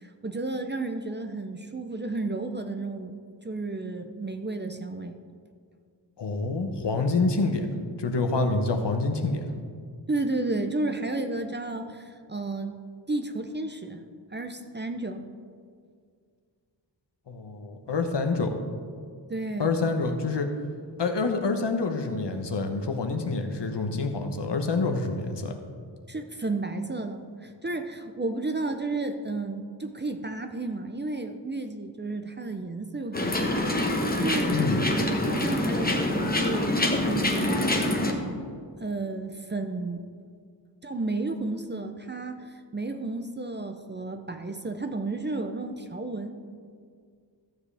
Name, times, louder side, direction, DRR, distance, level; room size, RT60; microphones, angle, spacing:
voice 1, 0.0-3.1 3.4-5.2 10.1-12.8 13.1-14.0 14.3-15.3 19.3-19.7 26.1-33.8 34.2-34.5 34.9-36.7 37.0-38.5 38.8-40.1 40.8-46.3, right 2 dB, 25° right, 6 dB, 0.5 m, -32 dB
voice 2, 6.2-7.7 8.0-9.5 17.3-18.6 19.6-20.5 21.0-25.6 34.5-34.8, left 3 dB, 65° left, 5 dB, 1.1 m, -27 dB
sound 1, 33.1-38.1, left 1 dB, 20° left, 1.1 m, -25 dB
14.0 x 7.4 x 3.4 m, 2.1 s
wide cardioid pair, 95°, 45 cm